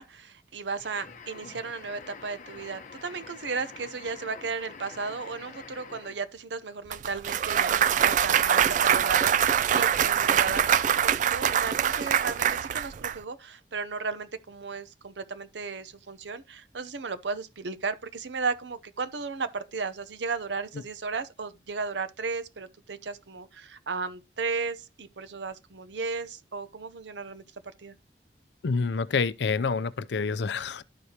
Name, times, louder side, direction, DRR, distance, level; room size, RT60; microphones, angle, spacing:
voice 1, 0.0-27.4 27.8-27.9, right 4 dB, 90° right, 0.7 m, -35 dB
sound 1, 0.8-6.3, left 5 dB, 45° left, 1.0 m, -46 dB
Clapping / Cheering / Applause, 6.9-13.1, right 9 dB, 45° right, 0.3 m, -24 dB
voice 2, 28.6-30.8, left 4 dB, 75° left, 0.5 m, -27 dB
12.5 x 4.8 x 2.9 m
head